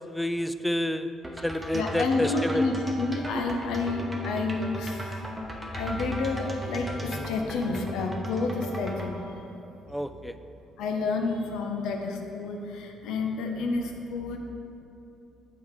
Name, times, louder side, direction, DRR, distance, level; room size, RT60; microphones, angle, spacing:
voice 1, 0.1-1.1 1.4-2.7 9.9-10.3, left 1 dB, 5° left, 10 dB, 0.3 m, -29 dB
sound 1, 1.2-9.1, right 1 dB, 15° right, 0.9 m, -36 dB
voice 2, 1.7-5.2 5.7-9.2 10.8-14.4, left 3 dB, 80° left, 3 dB, 0.7 m, -29 dB
7.6 x 3.6 x 4.8 m, 2.8 s
supercardioid pair, 75°, 0 cm